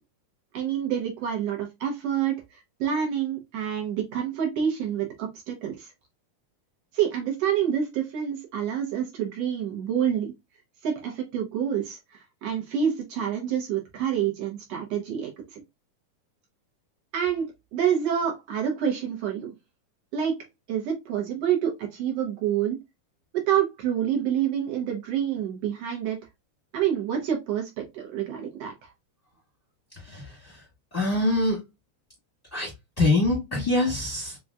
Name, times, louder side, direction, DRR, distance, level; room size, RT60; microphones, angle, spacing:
voice 1, 0.5-2.4 2.8-5.9 6.9-10.3 10.8-12.0 12.4-15.6 17.1-17.5 17.7-19.5 20.1-20.3 20.7-22.8 23.5-26.2 26.7-28.7, right 9 dB, 70° right, 1.6 m, -27 dB
voice 2, 29.9-31.6 32.5-34.4, left 2 dB, 30° left, 0.6 m, -25 dB
5.4 x 2.4 x 2.3 m
omnidirectional pair, 3.6 m